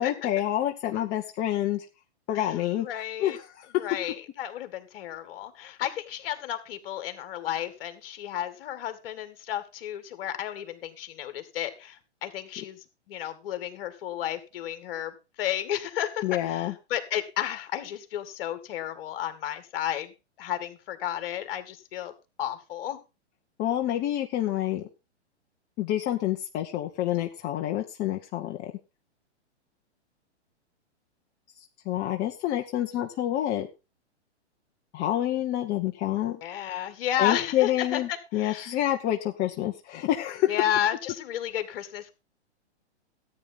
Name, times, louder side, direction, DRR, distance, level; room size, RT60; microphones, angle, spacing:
voice 1, 0.0-1.8 2.3-3.9 16.2-16.7 23.6-24.8 25.8-28.7 31.8-33.7 34.9-36.4 37.2-40.6, left 12 dB, 30° left, 3 dB, 1.0 m, -28 dB
voice 2, 2.8-3.4 3.8-12.8 13.1-20.1 20.4-22.1 22.4-23.0 36.4-38.7 40.5-42.1, left 11 dB, 55° left, 10 dB, 2.1 m, -32 dB
14.0 x 9.0 x 4.0 m, 0.29 s
hypercardioid pair, 130°, 35 cm